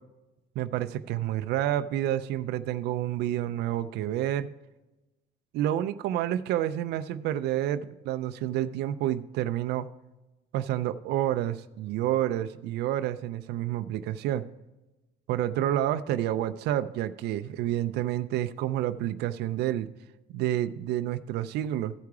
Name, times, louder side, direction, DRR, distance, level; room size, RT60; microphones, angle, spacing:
voice 1, 0.6-4.5 5.5-9.9 10.5-14.4 15.3-19.9 20.3-21.9, right 12 dB, 80° right, 11 dB, 0.4 m, -29 dB
14.0 x 4.8 x 4.7 m, 1.0 s
cardioid pair, 110°, 17 cm